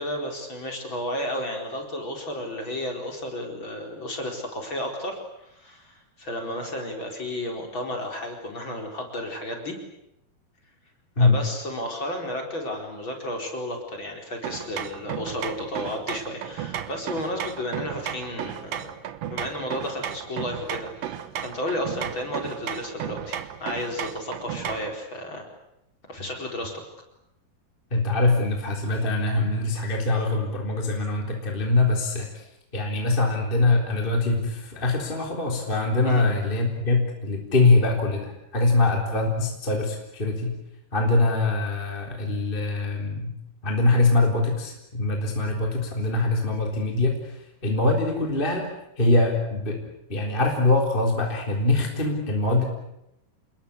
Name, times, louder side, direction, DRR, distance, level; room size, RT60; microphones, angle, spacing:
voice 1, 0.0-9.8 11.2-18.9 19.3-25.4 26.1-26.8 36.0-36.2, left 1 dB, 35° left, 2 dB, 5.0 m, -33 dB
sound 1, 14.4-25.0, right 10 dB, 60° right, 2.0 m, -34 dB
voice 2, 27.9-32.4 32.7-40.6 40.9-43.3 43.6-48.7 49.0-52.6, left 2 dB, 15° left, 1 dB, 3.6 m, -23 dB
28.5 x 21.5 x 8.5 m, 0.84 s
omnidirectional pair, 4.0 m